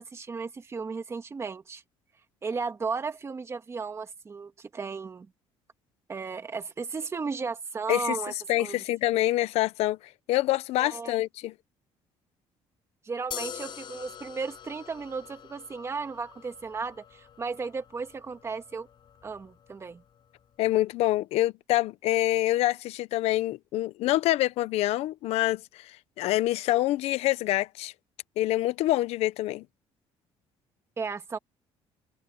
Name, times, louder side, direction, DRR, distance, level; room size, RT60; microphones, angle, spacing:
voice 1, 0.0-1.8 2.4-5.3 6.1-8.3 8.6-8.8 10.8-11.1 13.0-18.9 19.2-20.0 31.0-31.4, right 4 dB, 25° right, 2.0 m, -35 dB
voice 2, 8.5-11.5 20.6-27.9 28.4-29.7, left 16 dB, 75° left, 0.8 m, -26 dB
sound 1, 13.3-20.6, left 9 dB, 45° left, 6.8 m, -45 dB
cardioid pair, 125°, 11 cm